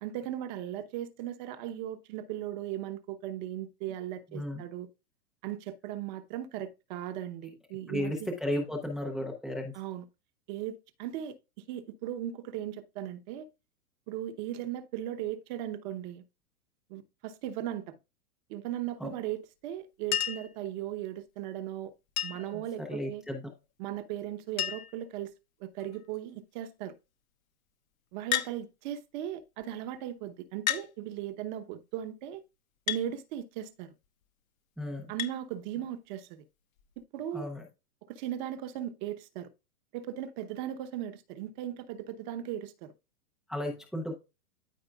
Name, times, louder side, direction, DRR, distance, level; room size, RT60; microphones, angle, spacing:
voice 1, 0.0-4.9 5.4-8.3 9.7-10.1 10.5-11.3 11.7-13.5 14.1-16.2 16.9-18.0 18.5-21.9 22.2-23.2 23.8-25.3 25.6-26.9 28.1-32.4 32.9-33.9 35.1-36.4 37.1-37.5 38.1-39.5 39.9-42.9, right 11 dB, 30° right, 0.9 m, -37 dB
voice 2, 7.9-9.7 19.0-19.1 22.5-23.5 34.8-35.1 37.3-37.6 43.5-44.2, left 1 dB, ahead, 0.5 m, -34 dB
Chink clink, 20.1-20.6 22.2-22.6 23.9-24.0 24.2-24.3 24.6-25.0 25.8-26.2 28.3-28.6 29.6-29.7 30.7-30.9 32.9-33.1 35.2-35.4 36.8-36.9, left 13 dB, 60° left, 1.2 m, -31 dB
13.0 x 4.4 x 2.3 m
hypercardioid pair, 155°, 45 cm